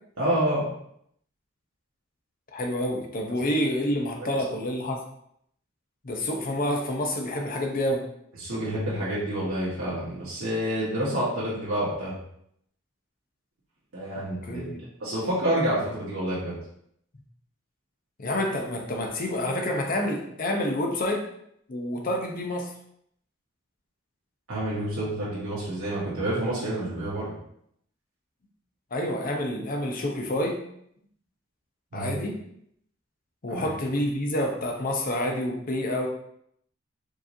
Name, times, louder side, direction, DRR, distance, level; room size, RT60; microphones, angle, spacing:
voice 1, 0.2-0.7 4.2-4.4 8.4-12.2 13.9-14.7 15.0-16.5 24.5-27.3 31.9-32.2 33.5-33.7, right 1 dB, 80° right, -8 dB, 1.2 m, -28 dB
voice 2, 2.5-5.0 6.0-8.0 14.1-14.8 18.2-21.3 21.7-22.7 28.9-30.6 31.9-32.4 33.4-36.1, left 1 dB, 45° left, 1 dB, 0.7 m, -28 dB
4.7 x 3.0 x 2.7 m, 0.71 s
head